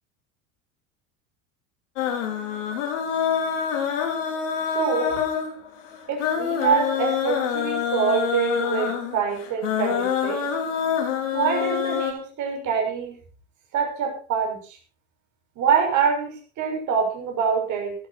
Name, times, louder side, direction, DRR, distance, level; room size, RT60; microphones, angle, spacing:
sound 1, 2.0-12.1, left 8 dB, 65° left, 4.2 m, -26 dB
voice 1, 4.7-5.2 6.1-10.4 11.3-13.2 13.7-14.8 15.6-18.0, right 6 dB, 50° right, 1 dB, 6.7 m, -25 dB
14.5 x 13.5 x 4.5 m, 0.37 s
hypercardioid pair, 80°, 39 cm